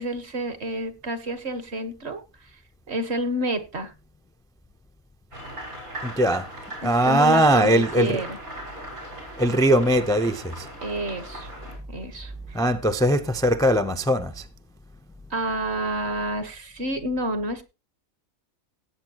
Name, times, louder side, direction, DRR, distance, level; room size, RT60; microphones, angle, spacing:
voice 1, 0.0-2.6 2.9-3.9 6.8-8.4 10.8-11.5 11.9-12.6 15.3-17.6, right 1 dB, 50° right, 1.6 m, -29 dB
sound 1, 5.3-11.8, right 1 dB, 90° right, 6.1 m, -39 dB
voice 2, 6.0-6.5 6.8-8.2 9.4-10.7 12.5-14.4, right 1 dB, 5° left, 0.5 m, -20 dB
17.0 x 8.5 x 3.0 m
omnidirectional pair, 1.5 m